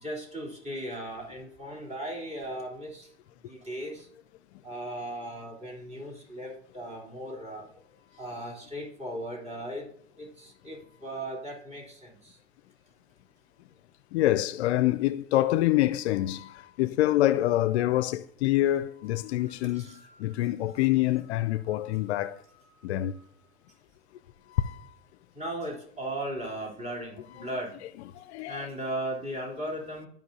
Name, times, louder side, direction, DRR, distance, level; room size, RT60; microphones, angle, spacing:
voice 1, 0.0-3.1 3.5-4.1 4.6-7.6 8.2-9.9 10.2-12.3 19.5-20.1 25.4-27.7 28.5-30.1, right 1 dB, 20° right, 3.5 m, -37 dB
voice 2, 14.1-22.4 22.8-23.2 24.6-24.8 28.1-28.7, left 15 dB, 75° left, 0.5 m, -26 dB
14.0 x 5.4 x 2.8 m
hypercardioid pair, 85°, 33 cm